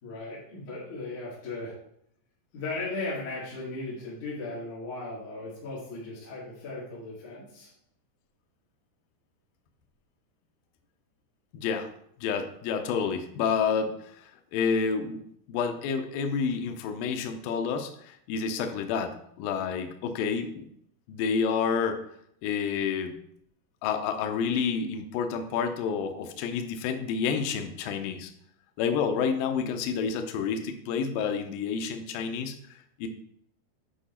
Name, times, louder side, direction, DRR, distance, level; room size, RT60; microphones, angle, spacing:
voice 1, 0.0-1.7 2.5-7.7, left 2 dB, 50° left, -8 dB, 3.3 m, -37 dB
voice 2, 11.5-11.9 12.2-15.2 15.5-20.7 21.1-22.0 22.4-23.2 23.8-28.3 28.8-32.6 33.0-33.1, left 6 dB, 85° left, 6 dB, 2.0 m, -29 dB
8.9 x 4.9 x 4.2 m, 0.70 s
omnidirectional pair, 5.0 m